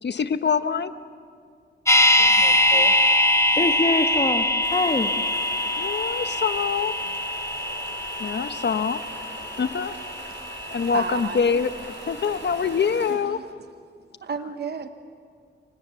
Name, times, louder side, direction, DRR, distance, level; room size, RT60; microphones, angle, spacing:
voice 1, 0.0-0.9 5.8-6.9 8.2-9.0 9.6-9.9 10.7-13.4, left 6 dB, 65° left, 11 dB, 1.1 m, -25 dB
sound 1, 1.9-11.9 12.2-12.3, left 1 dB, 15° left, 1.9 m, -23 dB
voice 2, 2.2-2.9 3.6-4.5 4.7-5.1, left 2 dB, 30° left, 6 dB, 1.4 m, -25 dB
sound 2, 4.6-13.2, right 2 dB, 90° right, 7.8 m, -41 dB
voice 3, 10.9-11.5 13.2-13.4 14.2-14.9, right 5 dB, 60° right, 9 dB, 1.0 m, -32 dB
30.0 x 24.5 x 7.0 m, 2.2 s
cardioid pair, 80°, 19 cm